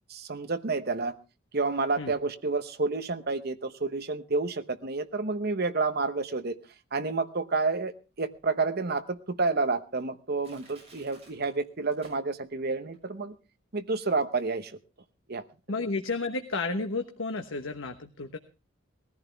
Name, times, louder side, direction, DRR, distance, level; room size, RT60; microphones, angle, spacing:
voice 1, 0.1-1.2 1.5-6.6 6.9-7.9 8.2-13.3 13.7-14.8 15.3-15.4, right 3 dB, 45° right, 9 dB, 0.9 m, -29 dB
Crushing, 8.3-8.4 9.1-9.2 9.8-9.9 10.4-12.6 12.9-13.0, right 3 dB, 30° right, 7.0 m, -56 dB
voice 2, 15.7-18.4, left 3 dB, 70° left, 6 dB, 1.1 m, -32 dB
19.0 x 14.5 x 3.4 m, 0.32 s
head